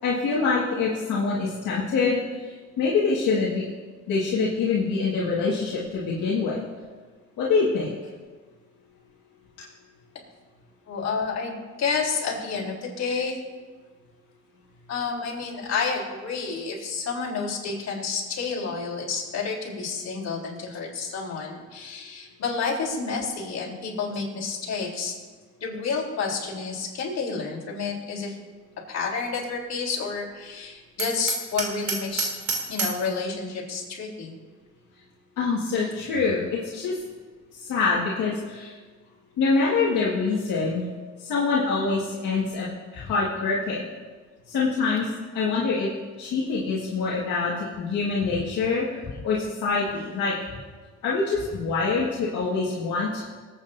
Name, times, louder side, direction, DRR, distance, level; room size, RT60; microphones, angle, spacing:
voice 1, 0.0-3.6 4.1-6.6 7.4-7.9 35.4-37.0 37.6-38.7 39.4-40.8 41.2-42.7 42.9-43.8 44.5-45.1 45.3-45.9 46.2-50.3 51.0-53.2, left 4 dB, 80° left, -6 dB, 1.9 m, -25 dB
voice 2, 10.9-13.4 14.9-25.1 25.6-28.4 28.9-32.3 32.7-34.3 43.0-43.1 49.0-49.2, left 5 dB, 60° left, -3 dB, 3.7 m, -30 dB
Hammer, 31.0-33.1, right 5 dB, 65° right, 2.6 m, -29 dB
25.5 x 8.7 x 2.7 m, 1.4 s
cardioid pair, 90°, 30 cm